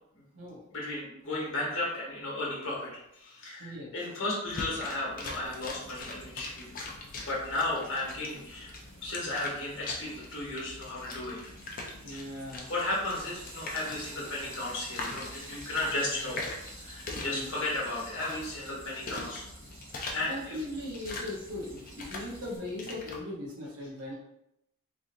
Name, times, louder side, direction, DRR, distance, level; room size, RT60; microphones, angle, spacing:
voice 1, 0.7-6.7 7.2-8.7 9.0-11.4 12.1-12.4 12.7-16.5 16.8-19.4 20.1-20.6, left 2 dB, 55° left, -4 dB, 1.2 m, -34 dB
voice 2, 3.6-3.9 12.0-12.7 17.1-17.5 20.1-24.1, left 1 dB, 80° right, -4 dB, 0.9 m, -39 dB
sound 1, 4.5-23.2, left 2 dB, 40° left, 0.4 m, -43 dB
Frying (food), 5.4-22.6, right 1 dB, 50° right, 1.4 m, -50 dB
3.5 x 2.5 x 2.5 m, 0.81 s
head